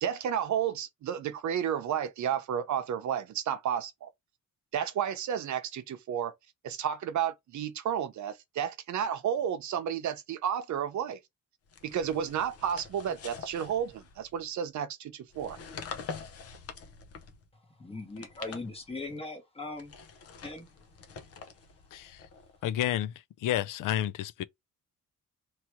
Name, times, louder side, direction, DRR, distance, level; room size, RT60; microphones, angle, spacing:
voice 1, 0.0-4.1 4.7-6.3 6.6-11.2 11.8-15.6, right 9 dB, 60° right, 0.8 m, -32 dB
sound 1, 11.7-14.5 15.3-17.5 18.0-19.2 19.7-22.6, left 5 dB, 45° left, 0.8 m, -45 dB
voice 2, 17.8-19.9 20.4-20.7, left 2 dB, 15° left, 1.1 m, -39 dB
voice 3, 22.6-23.1 23.4-24.4, left 12 dB, 75° left, 0.5 m, -30 dB
3.1 x 2.9 x 4.5 m
cardioid pair, 170°, 33 cm